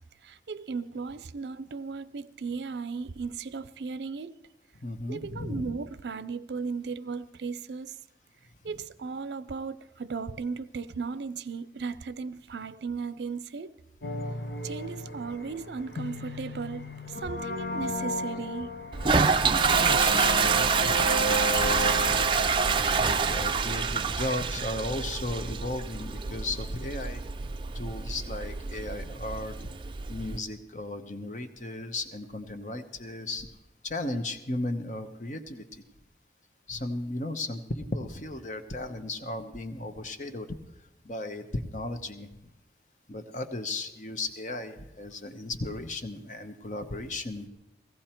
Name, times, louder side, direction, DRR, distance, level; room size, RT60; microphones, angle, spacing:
voice 1, 0.2-4.4 5.1-8.0 8.6-13.7 14.6-18.7, right 5 dB, 75° right, 0.5 m, -36 dB
voice 2, 4.8-5.7 19.8-21.0 21.4-21.9 23.0-27.5 27.7-29.7 30.1-33.5 33.8-35.8 36.7-40.6 41.0-42.5 43.1-47.5, left 2 dB, 45° left, 1.0 m, -35 dB
sound 1, 14.0-24.2, equal, 70° left, 1.1 m, -35 dB
Toilet flush, 18.9-30.4, right 5 dB, 30° right, 0.5 m, -27 dB
17.0 x 15.5 x 4.4 m
head